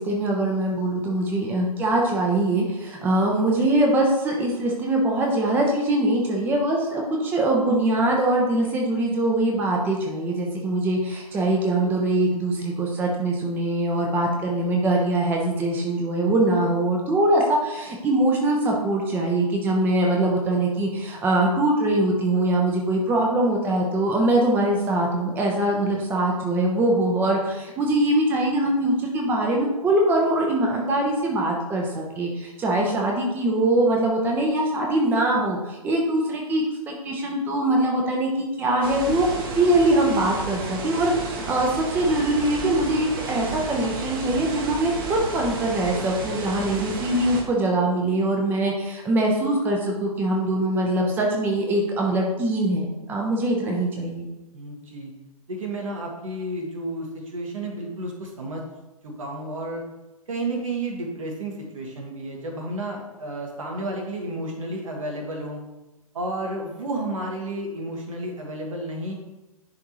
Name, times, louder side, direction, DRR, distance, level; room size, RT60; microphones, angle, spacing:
voice 1, 0.0-39.3 39.5-54.2, right 1 dB, 10° right, -1 dB, 0.8 m, -22 dB
sound 1, 38.8-47.4, right 3 dB, 35° right, 1.2 m, -32 dB
voice 2, 54.5-55.1 55.5-58.6 59.0-59.8 60.3-65.6 66.1-69.1, right 1 dB, 60° right, 1 dB, 1.7 m, -31 dB
10.5 x 3.6 x 3.1 m, 1.0 s
figure-of-eight pair, 125°, 20 cm